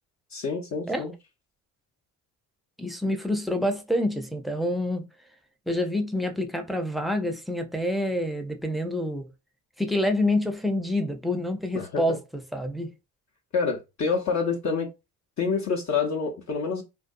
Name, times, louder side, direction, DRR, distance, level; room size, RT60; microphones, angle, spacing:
voice 1, 0.3-1.1 11.7-12.2 13.5-14.9 15.4-16.8, left 5 dB, 50° left, 0.7 m, -27 dB
voice 2, 2.8-5.0 5.7-9.3 9.8-12.2 12.5-12.9, left 1 dB, ahead, 0.5 m, -27 dB
2.5 x 2.3 x 2.6 m
supercardioid pair, 80°, 35 cm